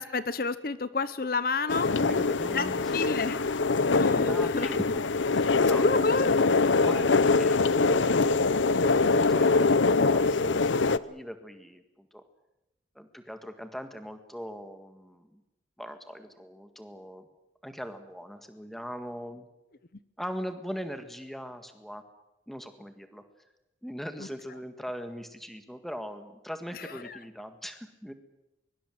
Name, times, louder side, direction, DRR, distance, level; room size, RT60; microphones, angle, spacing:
voice 1, 0.0-1.9 2.5-3.4 4.0-4.7 5.8-6.4 8.7-8.9 26.7-27.2, left 3 dB, 50° left, 15 dB, 0.8 m, -30 dB
sound 1, 1.7-11.0, left 3 dB, 90° left, 0.8 m, -23 dB
voice 2, 2.0-3.0 4.2-5.0 5.3-6.3 6.7-12.2 13.0-15.4 15.8-17.3 17.6-19.5 20.2-22.0 22.5-23.2 23.8-28.1, equal, ahead, 8 dB, 1.7 m, -40 dB
23.0 x 23.0 x 7.8 m, 0.94 s
head